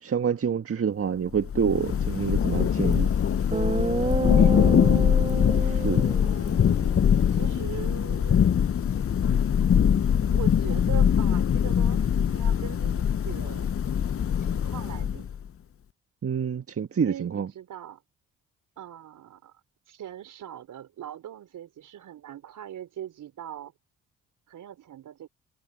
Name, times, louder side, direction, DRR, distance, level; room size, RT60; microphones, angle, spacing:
voice 1, 0.0-3.1 5.6-6.0 16.2-17.5, right 7 dB, 45° right, 1.6 m, -27 dB
Thunder / Rain, 1.3-15.4, left 8 dB, 45° left, 0.9 m, -23 dB
Guitar, 2.9-3.0 3.5-7.6, right 3 dB, 20° right, 2.1 m, -30 dB
voice 2, 4.4-4.9 7.3-8.4 10.2-13.7 14.4-15.3 17.0-18.0 18.8-19.5 19.9-23.7 24.5-25.3, right 10 dB, 70° right, 5.0 m, -41 dB
hypercardioid pair, 45°, 33 cm